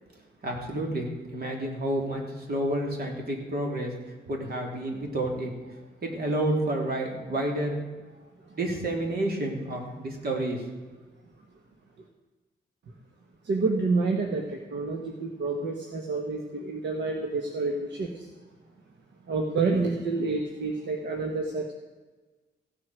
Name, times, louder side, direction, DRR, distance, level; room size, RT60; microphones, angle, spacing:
voice 1, 0.4-5.5 6.0-7.8 8.5-10.6, right 1 dB, 60° right, 1 dB, 3.1 m, -30 dB
voice 2, 13.4-18.3 19.3-21.7, right 3 dB, 80° right, 2 dB, 1.4 m, -28 dB
15.5 x 7.9 x 6.3 m, 1.3 s
wide cardioid pair, 120°, 18 cm